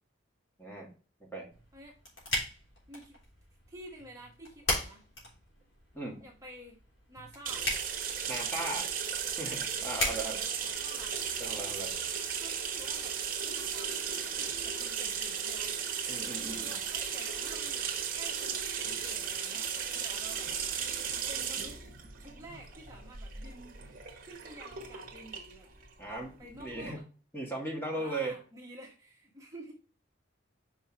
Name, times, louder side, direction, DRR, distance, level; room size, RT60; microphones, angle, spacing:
voice 1, 0.6-0.9 1.2-1.5 5.9-6.2 8.3-8.9 9.4-10.4 11.4-11.9 16.1-16.8 22.5-22.6 26.0-26.3 26.6-27.0 27.3-28.4, right 2 dB, 10° left, -1 dB, 1.5 m, -37 dB
sound 1, 1.5-11.5, left 1 dB, 70° left, 3.4 m, -39 dB
voice 2, 2.9-3.2 3.7-5.0 6.2-6.8 7.1-7.7 10.0-11.2 12.4-15.7 16.4-20.5 21.3-21.8 22.2-23.8 24.2-25.7 26.1-27.0 27.8-29.7, right 1 dB, 15° right, -1 dB, 1.3 m, -50 dB
sound 2, 7.4-26.9, right 7 dB, 45° right, 1.2 m, -36 dB
5.6 x 5.5 x 4.4 m, 0.38 s
head